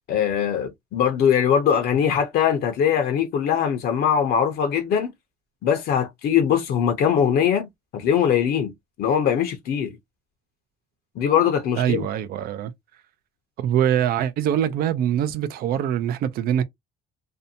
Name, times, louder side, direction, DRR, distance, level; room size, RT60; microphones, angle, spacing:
voice 1, 0.1-5.1 5.6-7.7 7.9-8.7 9.0-10.0 11.2-12.0, left 8 dB, 65° left, 0.6 m, -21 dB
voice 2, 11.8-12.7 13.6-16.6, right 10 dB, 65° right, 0.4 m, -23 dB
2.6 x 2.2 x 2.7 m
cardioid pair, 110°, 17 cm